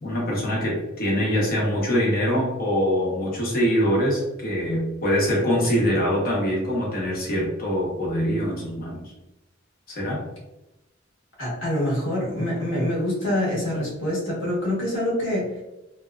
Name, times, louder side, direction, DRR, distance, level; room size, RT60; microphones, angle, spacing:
voice 1, 0.0-9.0 9.9-10.2, equal, 45° left, -4 dB, 0.9 m, -24 dB
voice 2, 11.4-15.6, left 1 dB, 65° left, -5 dB, 1.1 m, -25 dB
2.7 x 2.3 x 2.2 m, 0.97 s
head